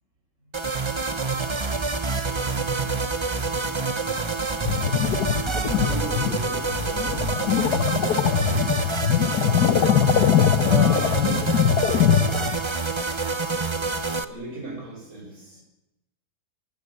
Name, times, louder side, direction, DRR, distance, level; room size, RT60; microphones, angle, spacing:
sound 1, 0.5-14.2, right 4 dB, 20° right, 0.9 m, -27 dB
voice 1, 2.3-3.7 5.7-9.3 10.6-11.5 14.3-15.6, right 1 dB, 50° right, 1 dB, 5.9 m, -37 dB
sound 2, 4.7-12.6, left 9 dB, 85° left, 1.7 m, -22 dB
25.5 x 17.5 x 8.6 m, 0.95 s
omnidirectional pair, 1.7 m